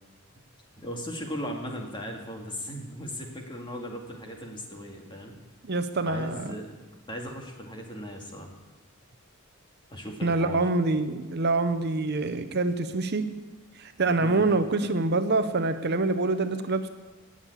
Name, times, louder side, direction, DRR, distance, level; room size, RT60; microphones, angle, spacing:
voice 1, 0.8-5.4 6.0-6.7 7.1-8.6 9.9-10.6 14.2-14.5, equal, 20° left, 1 dB, 2.2 m, -37 dB
voice 2, 5.6-6.4 10.2-13.2 13.8-16.9, right 3 dB, 50° right, 9 dB, 0.8 m, -26 dB
18.0 x 7.4 x 8.6 m, 1.2 s
head